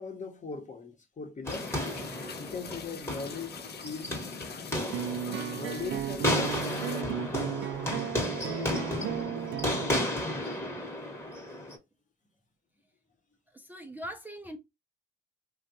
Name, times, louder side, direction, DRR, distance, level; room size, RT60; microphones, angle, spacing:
voice 1, 0.0-1.9 2.4-4.3 5.4-7.5 8.4-9.2, left 4 dB, 40° left, 0.9 m, -40 dB
sound 1, 1.5-7.0, left 6 dB, 55° left, 0.5 m, -44 dB
sound 2, 1.5-11.8, left 1 dB, 15° left, 1.1 m, -33 dB
sound 3, 4.9-10.0, right 9 dB, 80° right, 0.5 m, -35 dB
voice 2, 13.5-14.6, equal, 10° right, 0.4 m, -41 dB
3.4 x 2.3 x 2.6 m
cardioid pair, 85°, 20 cm